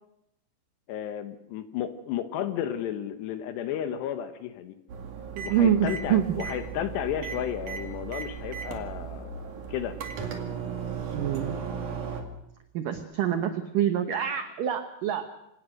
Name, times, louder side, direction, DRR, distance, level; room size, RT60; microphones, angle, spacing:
voice 1, 0.9-4.8 5.4-10.0, left 10 dB, 75° left, 9 dB, 2.9 m, -33 dB
sound 1, 4.9-12.2, right 6 dB, 50° right, 3.0 m, -36 dB
voice 2, 5.4-6.4 11.1-11.6 12.7-15.2, right 10 dB, 90° right, 8 dB, 1.9 m, -26 dB
26.5 x 18.0 x 6.4 m, 0.81 s
omnidirectional pair, 5.5 m